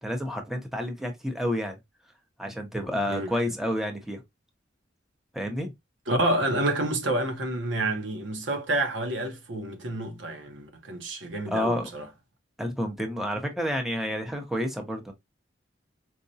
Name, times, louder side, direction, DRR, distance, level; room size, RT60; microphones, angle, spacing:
voice 1, 0.0-1.8 2.4-4.2 5.3-5.7 11.5-11.9 12.6-15.1, equal, ahead, 0.7 m, -29 dB
voice 2, 6.1-12.1, right 1 dB, 90° right, 0.9 m, -28 dB
4.6 x 2.2 x 2.6 m
head